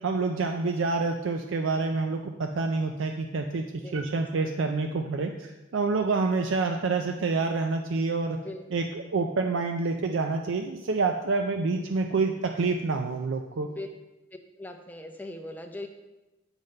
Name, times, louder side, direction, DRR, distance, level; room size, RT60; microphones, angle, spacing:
voice 1, 0.0-8.4 8.7-13.7, right 3 dB, 70° right, 5 dB, 0.4 m, -27 dB
voice 2, 3.8-4.6 8.4-8.9 11.7-11.9 13.7-13.9 14.6-15.9, left 1 dB, 10° left, 4 dB, 0.5 m, -41 dB
8.9 x 3.8 x 5.2 m, 1.1 s
head